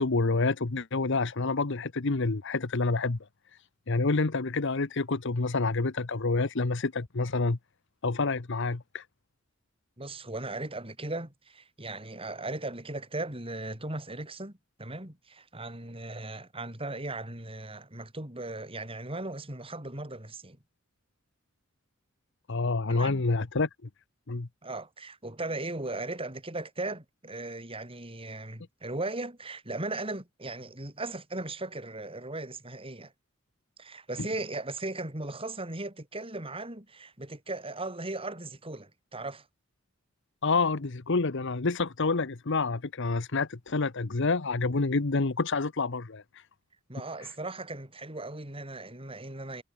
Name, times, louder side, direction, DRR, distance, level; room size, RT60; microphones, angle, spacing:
voice 1, 0.0-3.2 3.9-7.6 8.0-9.0 22.5-23.7 24.3-24.5 40.4-46.2, left 3 dB, 65° left, 1.0 m, -28 dB
voice 2, 10.0-20.6 22.9-23.2 24.6-33.1 33.8-39.5 46.9-49.6, right 2 dB, 25° right, 5.2 m, -37 dB
head